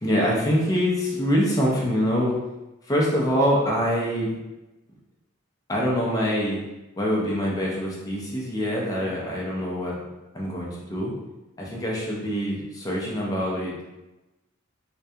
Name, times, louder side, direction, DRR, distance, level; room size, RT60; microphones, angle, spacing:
voice 1, 0.0-2.4 2.9-4.3 5.7-6.6 7.0-9.9 10.3-11.1 11.6-13.7, equal, 20° left, -3 dB, 0.4 m, -24 dB
2.3 x 2.2 x 2.6 m, 1.0 s
head